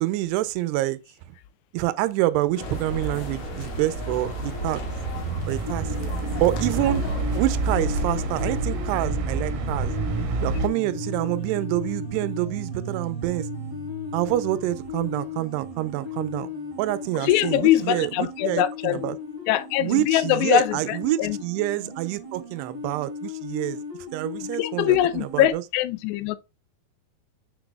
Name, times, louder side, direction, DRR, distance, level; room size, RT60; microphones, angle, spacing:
voice 1, 0.0-1.0 1.7-4.8 5.5-5.9 6.4-7.0 7.3-9.9 10.4-13.5 14.1-16.5 16.8-19.2 19.8-23.8 24.1-25.6, right 16 dB, 85° right, 2.7 m, -27 dB
sound 1, 2.6-9.0, left 7 dB, 70° left, 2.9 m, -40 dB
sound 2, 2.6-10.7, right 3 dB, 65° right, 2.5 m, -28 dB
sound 3, 5.6-25.5, left 2 dB, 5° right, 2.1 m, -36 dB
voice 2, 17.2-19.1 19.5-21.4 24.4-26.4, left 13 dB, 85° left, 2.8 m, -23 dB
6.8 x 6.0 x 2.3 m
omnidirectional pair, 4.7 m